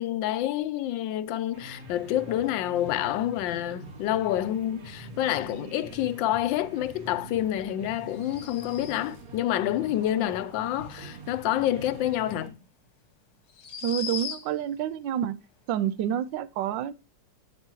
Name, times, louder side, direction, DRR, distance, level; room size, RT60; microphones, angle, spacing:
voice 1, 0.0-12.6, left 12 dB, 90° left, 1.3 m, -28 dB
sound 1, 1.5-12.5, right 2 dB, 55° right, 2.0 m, -44 dB
sound 2, 8.1-9.2 12.3-12.4 13.5-14.7, left 6 dB, 60° left, 1.6 m, -38 dB
voice 2, 13.8-15.4 15.7-16.9, right 10 dB, 80° right, 1.3 m, -28 dB
8.2 x 8.0 x 2.9 m
omnidirectional pair, 2.0 m